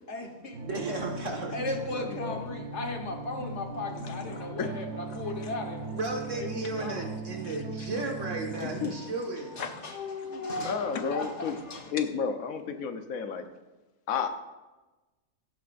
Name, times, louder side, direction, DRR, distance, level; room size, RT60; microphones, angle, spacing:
voice 1, 0.1-0.7 1.2-6.1 6.3-7.1 7.9-8.2 8.5-11.9, left 2 dB, 55° left, 1.6 m, -37 dB
sound 1, 0.5-8.9, right 3 dB, 90° right, 1.5 m, -39 dB
voice 2, 0.6-1.5 5.9-9.6, right 2 dB, 65° right, 2.0 m, -34 dB
voice 3, 2.0-2.4 4.0-4.2 4.6-4.7 7.5-7.6 8.6-8.9 9.6-9.8 10.3-11.6 11.9-13.4 14.1-14.3, left 6 dB, 85° left, 1.3 m, -32 dB
16.0 x 9.2 x 2.5 m
omnidirectional pair, 1.4 m